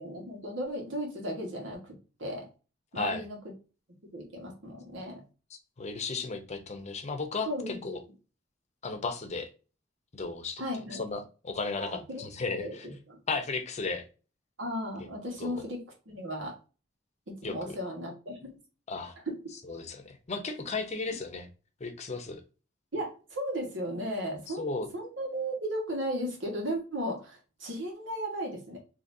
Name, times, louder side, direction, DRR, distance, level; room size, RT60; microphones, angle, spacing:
voice 1, 0.0-1.9 2.2-2.5 2.9-3.4 4.1-5.2 7.5-8.0 10.6-11.0 11.8-12.2 12.5-12.8 13.1-13.2 14.6-15.8 16.1-16.5 17.3-18.4 19.3-19.4 22.9-28.8, equal, 90° right, 1 dB, 1.5 m, -35 dB
voice 2, 5.5-8.0 8.8-9.5 10.1-10.6 10.9-12.9 13.3-14.1 15.4-15.6 17.4-17.8 18.9-19.2 19.6-21.5 21.8-22.4 24.5-24.9, left 4 dB, 35° left, 7 dB, 0.6 m, -35 dB
3.9 x 2.8 x 2.6 m, 0.34 s
head